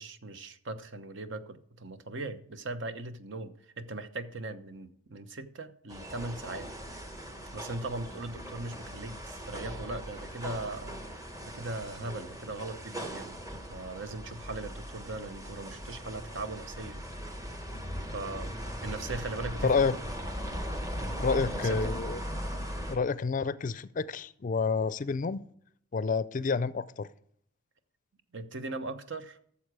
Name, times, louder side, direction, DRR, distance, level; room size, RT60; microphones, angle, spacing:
voice 1, 0.0-6.7 7.5-11.0 11.5-17.0 18.1-18.5 18.8-20.0 21.4-21.9 28.3-29.4, right 2 dB, 65° right, 0.9 m, -39 dB
sound 1, 5.9-23.0, equal, 15° right, 1.3 m, -39 dB
voice 2, 19.6-19.9 21.2-22.2 22.9-25.4 25.9-27.1, left 4 dB, 40° left, 0.4 m, -29 dB
13.5 x 7.1 x 4.8 m
head